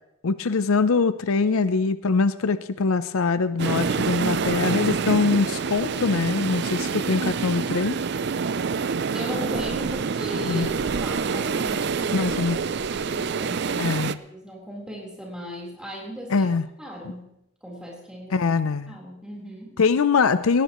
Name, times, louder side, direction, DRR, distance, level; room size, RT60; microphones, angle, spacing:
voice 1, 0.2-8.0 10.5-10.7 12.1-12.6 13.8-14.2 16.3-16.7 18.3-19.0 19.8-20.6, left 4 dB, 75° left, 13 dB, 0.6 m, -23 dB
sound 1, 3.6-14.1, right 5 dB, 50° right, 0.4 m, -27 dB
voice 2, 9.1-16.5 16.8-18.5 18.9-19.8, equal, 5° right, -3 dB, 3.9 m, -37 dB
18.5 x 17.0 x 3.1 m, 0.81 s
head